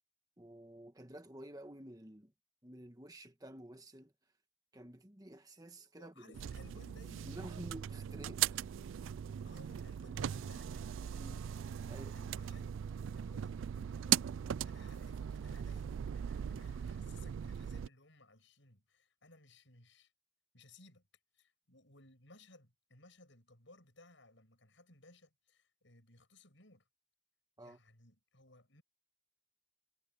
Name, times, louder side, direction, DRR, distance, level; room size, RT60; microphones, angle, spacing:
voice 1, 0.4-2.3 2.6-4.1 4.7-6.4 7.2-8.6 11.1-11.4 11.9-12.2 27.6-27.8, right 1 dB, 20° right, 1.3 m, -51 dB
voice 2, 6.0-7.8 9.4-11.4 12.1-14.2 14.6-20.1 20.5-21.1 21.3-26.8 27.6-28.8, left 2 dB, 65° left, 7.5 m, -61 dB
sound 1, 6.3-17.9, right 9 dB, 70° right, 0.3 m, -39 dB
head